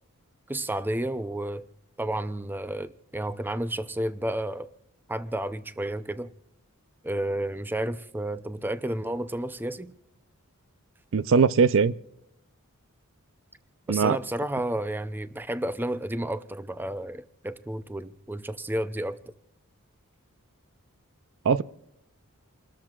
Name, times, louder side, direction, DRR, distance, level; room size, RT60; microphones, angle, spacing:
voice 1, 0.5-1.7 2.0-4.7 5.1-6.3 7.0-9.9 13.9-19.2, right 1 dB, 10° right, 0.5 m, -31 dB
voice 2, 11.1-11.9 13.9-14.2 21.5-21.6, right 5 dB, 60° right, 0.5 m, -20 dB
29.5 x 13.5 x 2.4 m
head